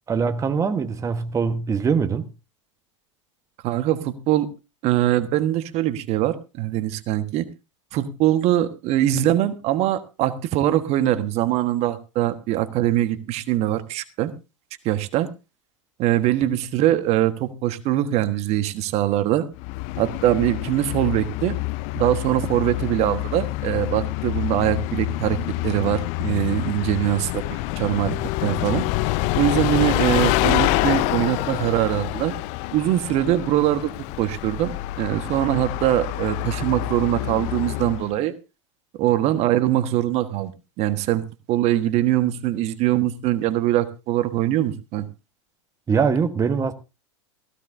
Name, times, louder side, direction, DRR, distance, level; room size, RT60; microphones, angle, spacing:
voice 1, 0.1-2.3 45.9-46.7, right 6 dB, 20° right, 1.3 m, -22 dB
voice 2, 3.6-4.5 4.8-7.4 7.9-14.3 14.8-15.3 16.0-19.5 20.0-21.6 21.9-25.4 25.6-28.1 28.4-28.8 29.3-32.4 32.7-33.9 34.2-38.3 39.0-40.5 40.8-45.1, right 13 dB, 40° right, 1.4 m, -22 dB
Bus, 19.5-38.1, left 18 dB, 45° left, 0.6 m, -26 dB
17.0 x 15.0 x 2.7 m
figure-of-eight pair, 95°, 16 cm